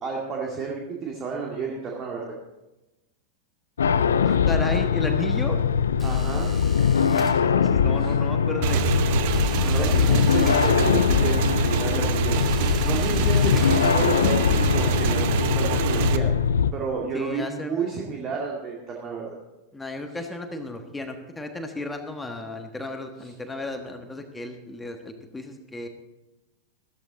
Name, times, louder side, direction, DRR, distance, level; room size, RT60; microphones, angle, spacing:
voice 1, 0.0-2.4 6.0-6.5 8.0-8.1 9.7-12.4 12.8-15.2 15.5-16.3 16.7-19.4, right 5 dB, 30° right, -1 dB, 2.1 m, -31 dB
sound 1, 3.8-16.7, left 7 dB, 70° left, 0.5 m, -22 dB
voice 2, 4.2-5.6 7.2-9.0 9.6-10.2 17.1-17.9 19.7-25.9, left 2 dB, 10° left, 5 dB, 1.4 m, -34 dB
sound 2, 6.0-7.8 9.3-11.2 12.3-14.3, right 1 dB, 10° right, 2.5 m, -43 dB
Motorcycle / Engine, 8.6-16.2, right 11 dB, 50° right, 0.7 m, -26 dB
14.5 x 13.5 x 3.9 m, 1.0 s
figure-of-eight pair, 90°, 0 cm